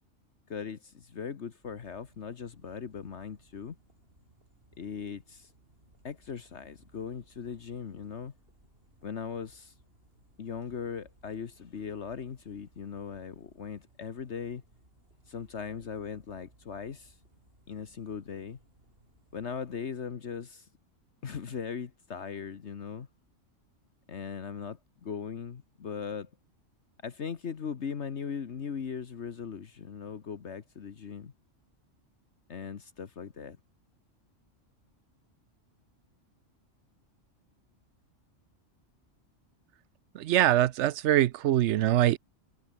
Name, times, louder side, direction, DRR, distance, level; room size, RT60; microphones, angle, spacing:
voice 1, 0.5-3.8 4.8-5.5 6.0-8.3 9.0-9.7 10.4-14.6 15.3-17.2 17.7-18.6 19.3-20.7 21.2-23.1 24.1-26.3 27.0-31.3 32.5-33.6, left 6 dB, 65° left, 1.5 m, -39 dB
sound 1, 1.6-19.9, right 1 dB, 50° right, 7.5 m, -64 dB
voice 2, 40.1-42.2, right 13 dB, 70° right, 0.9 m, -23 dB
omnidirectional pair, 1.3 m